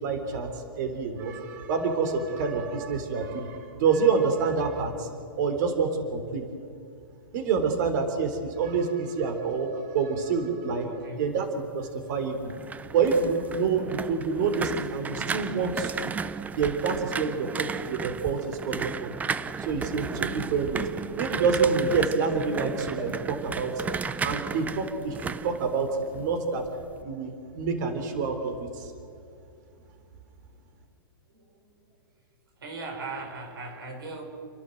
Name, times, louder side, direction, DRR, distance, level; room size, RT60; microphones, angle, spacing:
voice 1, 0.0-0.5 0.8-5.1 5.4-6.5 7.3-11.5 11.7-12.5 12.9-16.1 16.6-19.1 19.6-20.9 21.2-23.7 24.2-26.6 27.0-28.9, right 5 dB, 55° right, 6 dB, 3.7 m, -27 dB
voice 2, 10.8-11.2 31.3-31.8 32.6-34.2, right 3 dB, 75° right, 2 dB, 6.3 m, -39 dB
sound 1, 12.3-26.3 26.6-27.0, right 5 dB, 15° right, 0.6 m, -34 dB
29.5 x 12.0 x 7.9 m, 2.5 s
hypercardioid pair, 125°, 12 cm